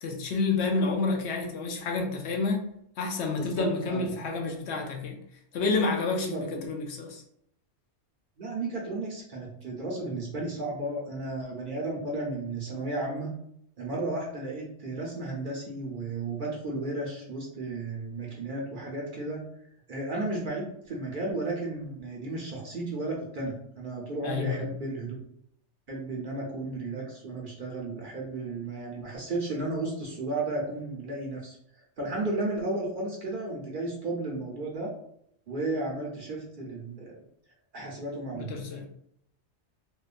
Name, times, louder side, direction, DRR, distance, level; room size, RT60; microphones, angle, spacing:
voice 1, 0.0-2.7 3.0-5.2 5.5-7.2 24.2-24.7 38.3-38.9, left 3 dB, 70° left, 2 dB, 0.8 m, -29 dB
voice 2, 3.4-4.1 6.2-6.6 8.4-13.3 13.8-19.4 19.9-25.2 25.9-31.6 32.0-34.9 35.5-37.2 37.7-38.6, right 2 dB, 55° right, -2 dB, 0.7 m, -33 dB
2.8 x 2.2 x 2.4 m, 0.71 s
omnidirectional pair, 1.2 m